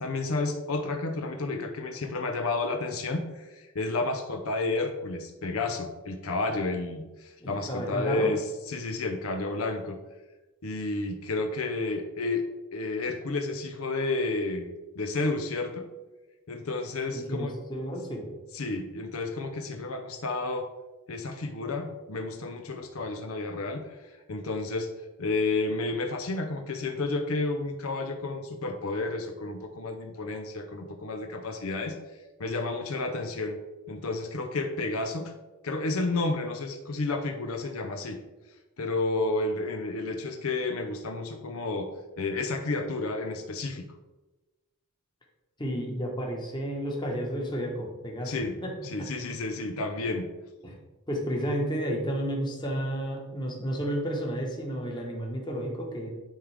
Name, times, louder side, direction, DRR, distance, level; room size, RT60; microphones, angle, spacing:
voice 1, 0.0-10.0 10.6-12.5 12.7-15.9 16.5-17.5 18.5-20.7 21.1-24.9 25.2-31.9 32.4-33.6 33.9-35.3 35.6-38.2 38.8-41.9 42.2-43.9 48.2-48.5 48.8-50.3, left 3 dB, 75° left, 5 dB, 0.7 m, -31 dB
voice 2, 7.4-8.3 17.1-18.2 45.6-48.7 49.0-49.1 50.6-50.7 51.1-56.1, equal, 20° left, 0 dB, 1.3 m, -32 dB
10.0 x 3.7 x 3.4 m, 1.1 s
head